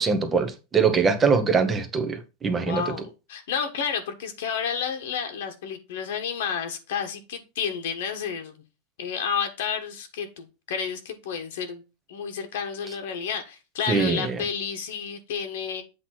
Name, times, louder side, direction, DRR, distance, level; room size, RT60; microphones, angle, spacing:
voice 1, 0.0-2.9 13.9-14.4, right 5 dB, 15° right, 0.9 m, -23 dB
voice 2, 2.6-8.6 9.0-11.8 12.1-15.8, left 7 dB, 70° left, 1.3 m, -31 dB
8.0 x 3.0 x 5.9 m
supercardioid pair, 160°, 0 cm